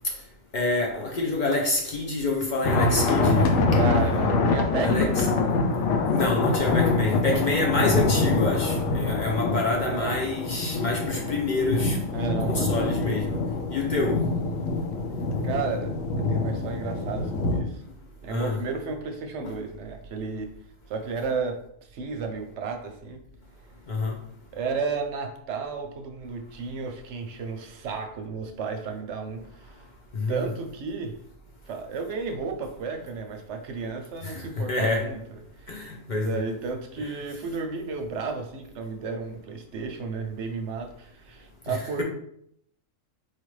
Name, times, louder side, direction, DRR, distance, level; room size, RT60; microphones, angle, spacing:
voice 1, 0.5-3.5 4.8-5.3 6.1-12.0 12.4-13.4 13.7-14.3 18.3-18.6 19.4-19.5 23.9-24.2 30.1-30.5 34.2-35.1 35.7-36.4 37.0-37.1 41.7-42.0, left 2 dB, 60° left, 0.5 m, -27 dB
thunder ontop Pinnacle Mt, 2.6-17.6, left 3 dB, 75° left, 1.0 m, -25 dB
voice 2, 3.1-5.2 9.8-10.1 12.1-12.8 15.4-17.8 18.2-20.5 20.9-21.6 21.9-23.2 24.5-29.7 30.3-31.2 31.7-35.2 35.6-42.0, right 5 dB, 65° right, 0.8 m, -33 dB
4.6 x 2.4 x 3.1 m
omnidirectional pair, 1.4 m